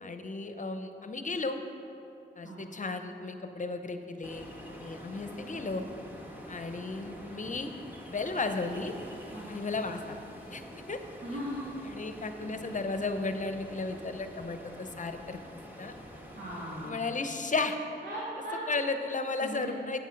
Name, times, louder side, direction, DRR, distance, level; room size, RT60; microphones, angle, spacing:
voice 1, 0.0-1.6 2.4-4.5 4.7-5.8 6.5-7.7 8.1-8.9 9.5-10.2 10.5-10.6 10.9-11.0 11.9-15.4 15.8-15.9 16.8-17.8 18.7-20.0, left 3 dB, 40° left, 7 dB, 0.8 m, -34 dB
Ocean, 4.2-16.9, equal, 10° right, 1.7 m, -47 dB
voice 2, 11.2-11.7 16.4-17.0 18.0-18.6 19.4-19.7, equal, 65° right, -8 dB, 2.2 m, -38 dB
9.1 x 8.3 x 5.3 m, 2.9 s
cardioid pair, 50°, 20 cm